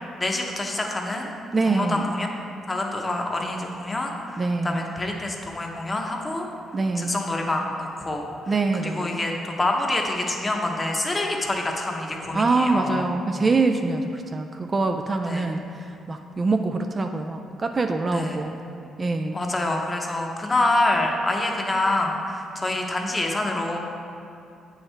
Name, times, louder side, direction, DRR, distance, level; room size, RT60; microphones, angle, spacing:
voice 1, 0.2-1.3 1.7-2.3 2.7-6.5 7.0-8.3 8.7-13.1 15.2-15.5 18.1-18.5 19.3-23.8, left 2 dB, 20° left, 1 dB, 0.8 m, -26 dB
voice 2, 1.5-2.1 4.4-4.9 6.7-7.2 8.5-9.2 12.3-18.6 19.0-19.4, right 3 dB, 30° right, 5 dB, 0.3 m, -24 dB
8.3 x 4.5 x 3.3 m, 2.5 s
cardioid pair, 90°, 0 cm